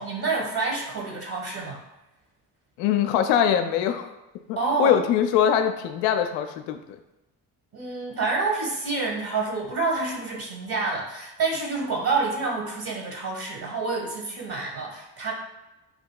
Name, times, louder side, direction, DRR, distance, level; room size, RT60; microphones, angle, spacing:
voice 1, 0.0-1.8 4.6-5.0 7.7-15.3, right 3 dB, 45° right, -1 dB, 1.4 m, -28 dB
voice 2, 2.8-4.1 4.5-6.8, left 9 dB, 70° left, 7 dB, 0.5 m, -22 dB
4.9 x 2.8 x 2.3 m, 0.98 s
hypercardioid pair, 50°, 49 cm